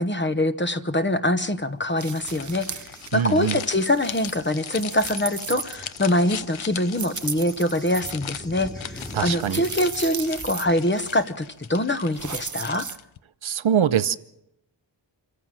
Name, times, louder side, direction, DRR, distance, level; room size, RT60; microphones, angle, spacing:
voice 1, 0.0-2.8 3.1-12.9, left 1 dB, 25° left, 11 dB, 1.0 m, -24 dB
sound 1, 2.0-13.2, left 9 dB, 80° left, 0.8 m, -39 dB
sound 2, 2.0-3.1 3.4-6.1 6.9-8.1 9.0-10.7 11.0-11.2 12.1-13.0, right 6 dB, 40° right, 0.7 m, -36 dB
Cricket / Thunder, 2.2-11.2, equal, 10° left, 2.0 m, -44 dB
voice 2, 3.1-3.6 9.1-9.6 13.4-14.2, right 8 dB, 90° right, 14 dB, 0.8 m, -23 dB
26.0 x 14.5 x 7.6 m, 0.83 s
wide cardioid pair, 115°, 46 cm